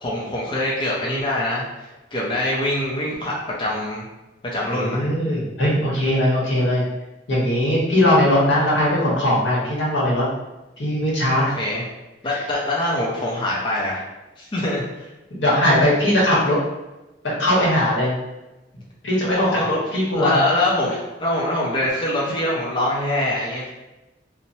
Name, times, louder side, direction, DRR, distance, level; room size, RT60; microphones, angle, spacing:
voice 1, 0.0-4.1 4.5-5.1 11.3-11.9 12.2-14.0 14.4-15.1 19.2-19.7 20.1-23.7, left 1 dB, 30° left, -5 dB, 0.5 m, -24 dB
voice 2, 4.7-6.8 7.3-10.2 10.8-11.5 15.3-16.6 17.4-18.1 19.0-20.3, left 1 dB, 90° left, -5 dB, 1.0 m, -19 dB
3.0 x 2.0 x 2.7 m, 1.0 s
head